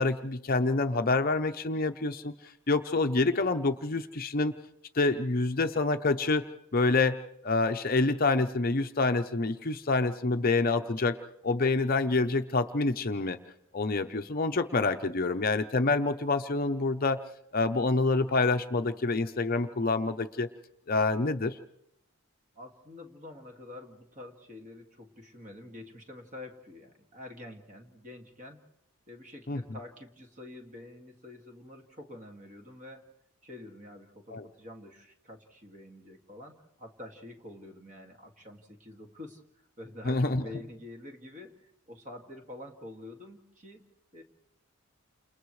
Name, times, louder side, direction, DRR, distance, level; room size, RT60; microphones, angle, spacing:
voice 1, 0.0-2.3 2.7-4.5 4.9-6.4 6.7-11.2 11.4-13.4 13.7-17.2 17.5-20.5 20.9-21.6 29.5-29.6 34.3-34.4 40.1-40.4, left 3 dB, 40° left, 8 dB, 0.7 m, -27 dB
voice 2, 22.6-28.6 29.1-33.1 33.4-39.4 39.8-43.8 44.1-44.2, left 1 dB, 35° right, 3 dB, 2.2 m, -47 dB
29.0 x 28.5 x 3.2 m, 0.76 s
head